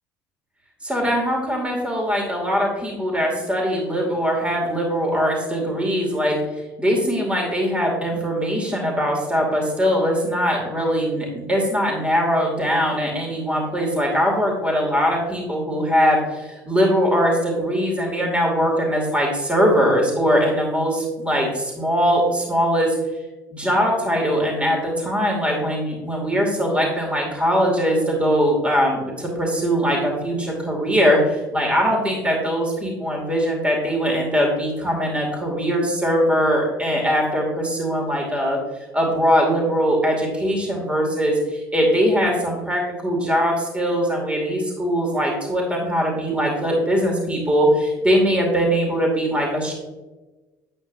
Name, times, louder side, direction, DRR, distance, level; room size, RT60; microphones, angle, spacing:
voice 1, 0.8-23.0 23.5-38.6 38.9-49.7, equal, 10° right, -1 dB, 2.5 m, -21 dB
8.6 x 7.8 x 2.7 m, 1.1 s
figure-of-eight pair, 60°, 10 cm